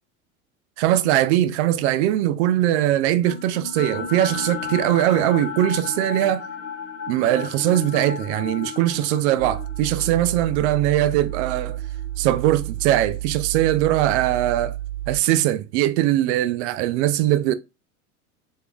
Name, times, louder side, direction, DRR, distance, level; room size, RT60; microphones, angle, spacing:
voice 1, 0.8-6.4 7.1-11.8 12.2-14.8 15.1-17.5, right 13 dB, 50° right, 0.5 m, -21 dB
sound 1, 3.2-13.4, left 6 dB, 30° left, 0.8 m, -34 dB
sound 2, 9.4-15.2, right 15 dB, 70° right, 1.2 m, -31 dB
3.6 x 3.2 x 2.3 m
figure-of-eight pair, 85°, 44 cm